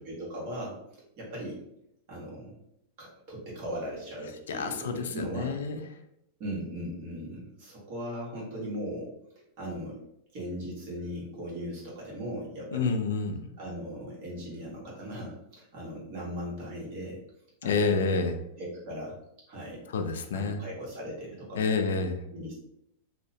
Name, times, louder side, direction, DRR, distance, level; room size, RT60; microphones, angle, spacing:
voice 1, 0.0-0.8 1.2-1.6 2.1-2.6 3.0-5.6 6.4-9.1 9.6-10.0 10.3-13.0 13.6-17.2 17.6-18.1 18.6-19.2 19.5-19.8 20.3-21.7 22.3-22.5, equal, 50° right, -4 dB, 1.3 m, -38 dB
voice 2, 4.5-5.8 12.7-13.4 17.6-18.4 19.9-20.6 21.6-22.2, left 4 dB, 90° left, 7 dB, 0.4 m, -28 dB
2.7 x 2.1 x 2.7 m, 0.79 s
supercardioid pair, 145°, 0 cm